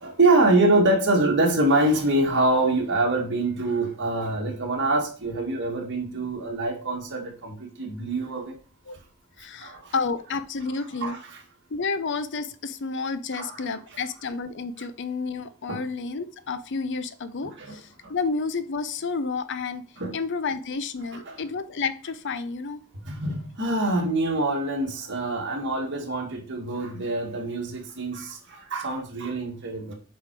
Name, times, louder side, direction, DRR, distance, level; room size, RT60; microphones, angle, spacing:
voice 1, 0.0-8.5 9.6-9.9 11.0-11.2 13.3-13.5 15.7-15.8 17.6-17.8 20.0-20.1 21.3-21.4 23.1-29.9, right 2 dB, 55° right, 2.0 m, -25 dB
voice 2, 9.4-11.2 11.7-19.8 20.1-22.8, left 4 dB, 55° left, 0.6 m, -30 dB
7.6 x 5.0 x 4.7 m
head